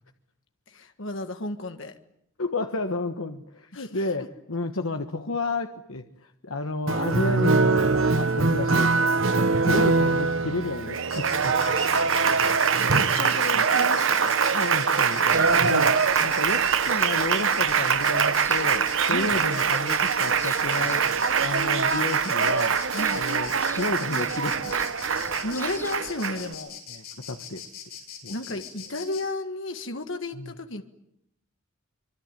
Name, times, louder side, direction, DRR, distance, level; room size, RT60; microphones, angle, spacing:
voice 1, 0.7-2.0 3.7-3.9 9.7-9.8 12.6-14.3 19.1-19.4 22.9-23.3 25.0-26.8 28.3-30.8, left 2 dB, 65° left, 7 dB, 1.8 m, -33 dB
voice 2, 2.4-8.9 9.6-11.8 14.5-15.9 16.2-22.8 23.1-24.7 26.9-27.6 28.2-28.3 30.3-30.5, left 2 dB, 80° left, 6 dB, 1.4 m, -31 dB
Applause, 6.9-26.5, right 5 dB, 70° right, 1.1 m, -23 dB
Insect, 11.1-29.2, left 8 dB, 45° left, 7.6 m, -42 dB
sound 1, 15.3-26.1, left 2 dB, 10° left, 1.8 m, -47 dB
25.5 x 24.0 x 9.2 m, 0.76 s
head